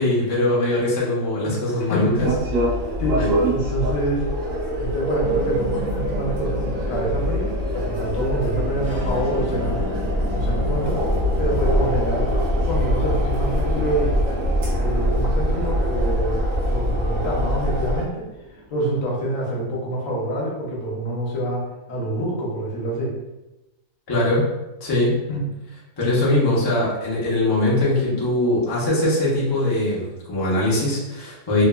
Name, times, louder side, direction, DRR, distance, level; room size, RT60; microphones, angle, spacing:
voice 1, 0.0-2.1 3.2-3.3 24.1-24.5 24.8-25.2 26.0-31.6, left 1 dB, 40° left, -6 dB, 0.3 m, -21 dB
voice 2, 1.4-2.3 3.0-4.3 4.8-9.8 10.3-14.2 14.8-16.4 16.7-23.2 25.3-25.4, right 1 dB, 70° left, -3 dB, 1.1 m, -27 dB
sound 1, 2.1-18.0, equal, 70° right, 1.0 m, -23 dB
sound 2, 5.2-19.8, right 1 dB, 30° right, 0.5 m, -35 dB
2.9 x 2.1 x 2.2 m, 0.99 s
omnidirectional pair, 1.5 m